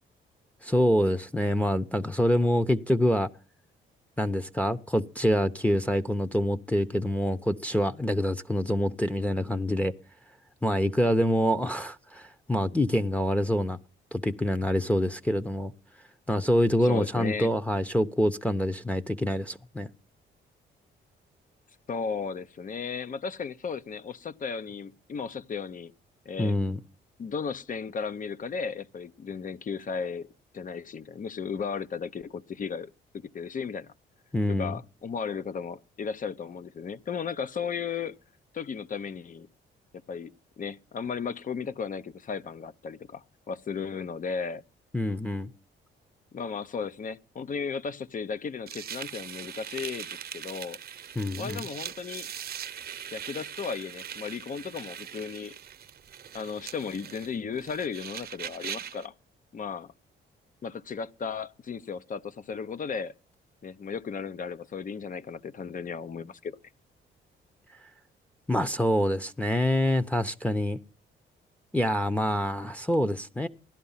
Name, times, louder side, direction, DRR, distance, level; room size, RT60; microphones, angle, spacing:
voice 1, 0.6-3.3 4.2-9.9 10.6-13.8 14.1-15.7 16.3-19.9 26.4-26.8 34.3-34.7 44.9-45.5 51.2-51.6 68.5-70.8 71.7-73.5, equal, 5° left, 0.9 m, -26 dB
voice 2, 16.8-17.5 21.9-25.9 26.2-26.5 27.2-33.9 34.5-38.2 38.5-39.5 40.1-44.6 46.3-50.8 51.3-52.3 53.1-55.6 56.3-59.1 59.5-59.9 60.6-63.1 63.6-66.6, left 6 dB, 40° left, 0.8 m, -35 dB
sound 1, 48.7-59.1, right 9 dB, 50° right, 0.9 m, -41 dB
16.5 x 11.5 x 5.7 m
cardioid pair, 90°, 20 cm